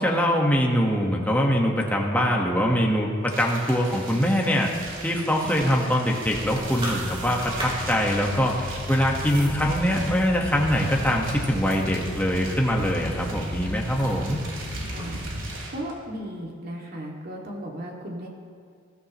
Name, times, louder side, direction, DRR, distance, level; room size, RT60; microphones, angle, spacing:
voice 1, 0.0-4.7 5.0-14.4, equal, 10° left, -1 dB, 1.5 m, -23 dB
sound 1, 3.2-15.9, right 2 dB, 75° right, 3.5 m, -40 dB
sound 2, 6.3-15.4, equal, 30° right, 3.6 m, -34 dB
voice 2, 14.9-15.2 15.7-18.3, equal, 50° right, -1 dB, 2.5 m, -35 dB
20.5 x 15.0 x 3.2 m, 2.2 s
head